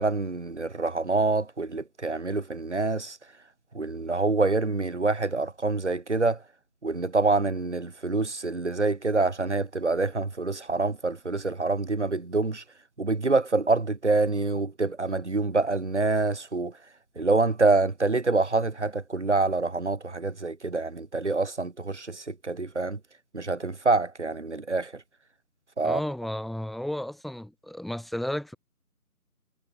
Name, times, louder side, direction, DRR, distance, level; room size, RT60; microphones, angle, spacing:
voice 1, 0.0-3.2 3.7-6.4 6.8-12.6 13.0-16.7 17.2-23.0 23.3-24.9 25.8-26.0, right 3 dB, 50° right, 6.5 m, -26 dB
voice 2, 25.8-28.6, left 1 dB, ahead, 5.2 m, -33 dB
figure-of-eight pair, 165°, 45 cm